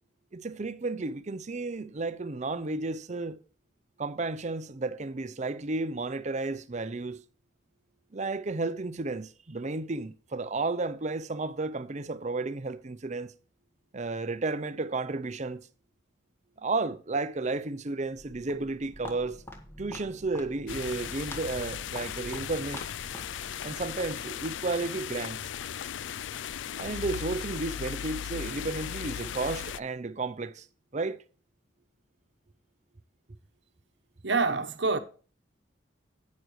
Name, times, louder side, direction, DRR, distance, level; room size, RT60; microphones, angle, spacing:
voice 1, 0.3-3.4 4.0-7.2 8.1-13.3 13.9-15.6 16.6-19.4 19.8-22.8 23.6-25.4 26.8-30.7 30.9-31.2, right 3 dB, 35° right, 0.6 m, -32 dB
Walk footsteps, 18.2-24.2, left 1 dB, 10° left, 1.6 m, -47 dB
sound 1, 20.7-29.8, left 9 dB, 70° left, 0.4 m, -37 dB
voice 2, 34.2-35.0, right 4 dB, 65° right, 1.1 m, -26 dB
11.0 x 9.5 x 3.2 m
head